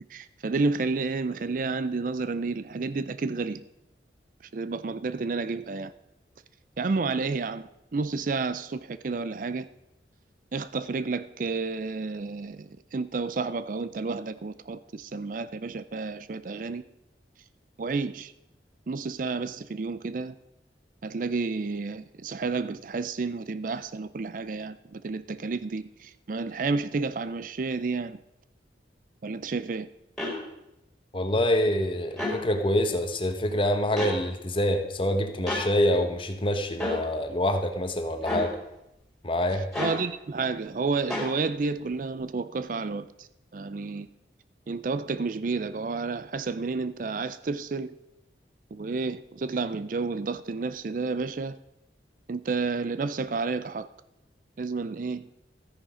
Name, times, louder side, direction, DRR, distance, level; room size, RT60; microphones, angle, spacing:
voice 1, 0.1-3.6 4.5-5.9 6.8-9.7 10.5-16.8 17.8-18.3 18.9-20.3 21.0-28.2 29.2-29.9 39.8-43.3 43.5-44.1 44.7-47.9 48.7-51.6 52.3-53.9 54.6-55.3, right 4 dB, 45° right, 0.4 m, -31 dB
sound 1, 30.2-30.4 32.1-32.4 34.0-34.2 35.5-35.7 36.8-37.0 38.2-38.5 39.7-40.0 41.1-41.3, left 2 dB, 5° left, 4.2 m, -29 dB
voice 2, 31.1-38.5 39.2-39.7, left 1 dB, 30° left, 1.1 m, -26 dB
13.5 x 9.8 x 5.0 m
head